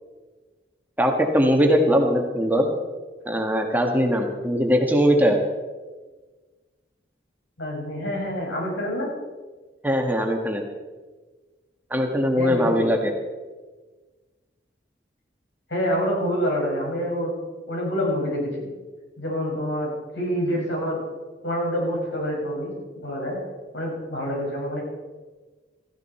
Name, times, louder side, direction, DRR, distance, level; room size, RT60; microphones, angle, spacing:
voice 1, 1.0-2.7 3.2-5.4 9.8-10.6 11.9-13.1, equal, 10° right, 3 dB, 1.4 m, -20 dB
voice 2, 7.6-9.1 12.4-12.9 15.7-17.4 17.7-18.7 19.2-21.0 21.4-22.7 23.0-23.4 23.7-24.8, equal, 85° left, -1 dB, 5.8 m, -27 dB
17.0 x 14.5 x 4.3 m, 1.3 s
head